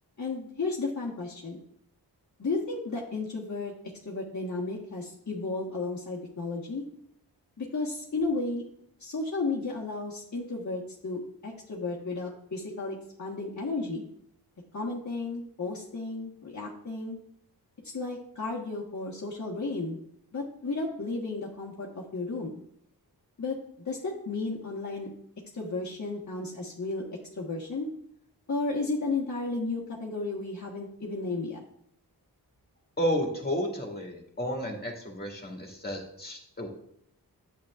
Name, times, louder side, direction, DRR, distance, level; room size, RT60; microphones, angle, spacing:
voice 1, 0.2-1.6 2.4-3.7 4.0-6.8 7.6-8.6 9.0-14.1 14.7-17.2 17.9-20.0 20.3-22.6 23.4-25.1 25.5-27.0 27.4-27.9 28.5-31.6, left 3 dB, 45° left, -4 dB, 1.4 m, -33 dB
voice 2, 33.0-36.7, equal, 25° left, 0 dB, 2.1 m, -32 dB
8.9 x 7.5 x 2.5 m, 0.70 s
cardioid pair, 55°, 39 cm